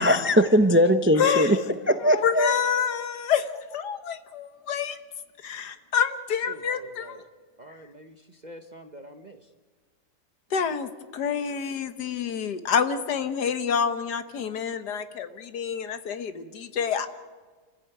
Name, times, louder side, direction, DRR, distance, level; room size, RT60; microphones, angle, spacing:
voice 1, 0.0-1.6 1.9-2.5, equal, 10° right, 9 dB, 0.5 m, -20 dB
voice 2, 1.2-1.6 2.0-5.0 5.4-7.2 10.5-17.1, left 7 dB, 70° left, 10 dB, 1.7 m, -27 dB
voice 3, 6.5-7.3 7.6-9.4, right 1 dB, 30° right, 7 dB, 0.9 m, -46 dB
27.5 x 14.5 x 9.1 m, 1.5 s
omnidirectional pair, 1.9 m